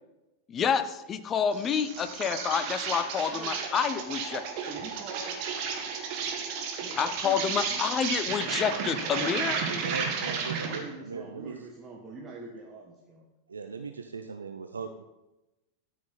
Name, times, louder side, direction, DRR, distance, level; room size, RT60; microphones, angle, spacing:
voice 1, 0.5-4.6 7.0-9.6, left 7 dB, 25° left, 11 dB, 0.7 m, -28 dB
Insect, 1.5-10.9, right 6 dB, 45° right, 1.7 m, -33 dB
voice 2, 3.3-3.6 4.7-5.9 6.8-7.8 9.1-13.3, right 3 dB, 25° right, -1 dB, 1.3 m, -44 dB
voice 3, 9.7-11.6 13.5-15.0, right 5 dB, 75° right, 7 dB, 0.5 m, -39 dB
12.5 x 6.1 x 4.1 m, 1.0 s
figure-of-eight pair, 90°, 0 cm